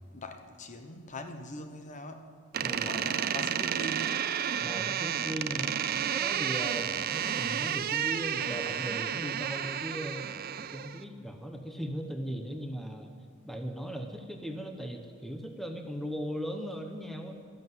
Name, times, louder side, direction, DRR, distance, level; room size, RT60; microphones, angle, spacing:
voice 1, 0.0-4.3, left 1 dB, 35° left, 7 dB, 1.0 m, -42 dB
Door, 2.5-11.0, right 9 dB, 45° right, 0.5 m, -31 dB
voice 2, 4.6-5.8 6.1-10.3 10.7-13.1 13.4-17.4, equal, ahead, 5 dB, 0.9 m, -38 dB
13.0 x 11.5 x 7.8 m, 2.2 s
head